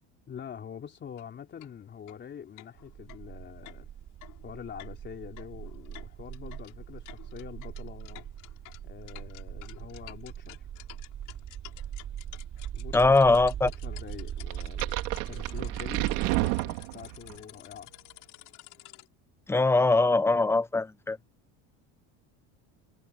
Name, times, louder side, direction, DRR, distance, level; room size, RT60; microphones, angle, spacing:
voice 1, 0.3-3.9 4.4-8.3 8.8-10.7 12.7-13.1 13.5-17.9, left 8 dB, 30° left, 3.6 m, -45 dB
sound 1, 1.1-1.2 1.6-1.7 2.1-2.2 2.6-19.1, left 19 dB, 60° left, 7.0 m, -52 dB
sound 2, 2.8-16.5, right 10 dB, 40° right, 4.5 m, -40 dB
voice 2, 12.9-13.7 19.5-21.2, left 3 dB, 5° left, 0.7 m, -22 dB
sound 3, 14.5-17.4, right 22 dB, 85° right, 2.9 m, -30 dB
cardioid pair, 140°, 35 cm